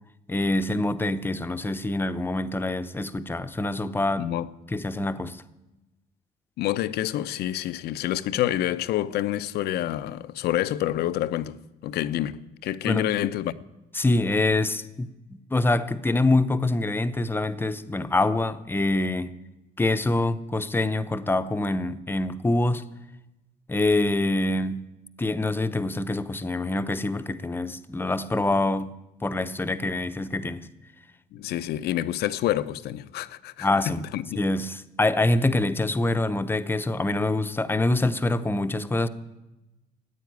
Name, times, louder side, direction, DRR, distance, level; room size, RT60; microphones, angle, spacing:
voice 1, 0.3-4.3 4.7-5.4 12.8-13.1 13.9-15.1 15.5-19.3 19.8-22.8 23.7-24.9 25.2-28.9 29.2-30.7 33.6-34.0 34.4-39.1, left 2 dB, 10° left, 0.8 m, -25 dB
voice 2, 4.2-4.5 5.2-5.3 6.6-11.6 11.8-13.5 31.3-33.7 34.1-34.4, left 13 dB, 75° left, 0.7 m, -28 dB
14.5 x 9.4 x 9.3 m
cardioid pair, 110°, 17 cm